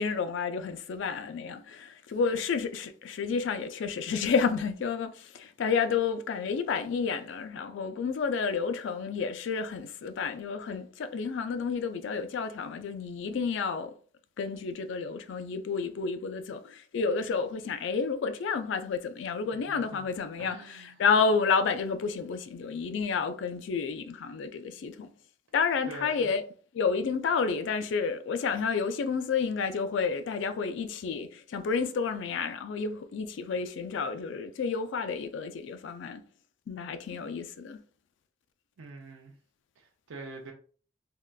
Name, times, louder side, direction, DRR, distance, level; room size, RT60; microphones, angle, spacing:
voice 1, 0.0-13.9 14.4-25.1 25.5-26.4 26.7-36.2 36.7-37.8, left 5 dB, 65° left, 0.3 m, -30 dB
voice 2, 19.7-20.1 20.4-21.0 25.9-26.3 38.8-39.4 39.8-40.5, right 3 dB, 85° right, 0.5 m, -45 dB
3.6 x 2.2 x 2.2 m
head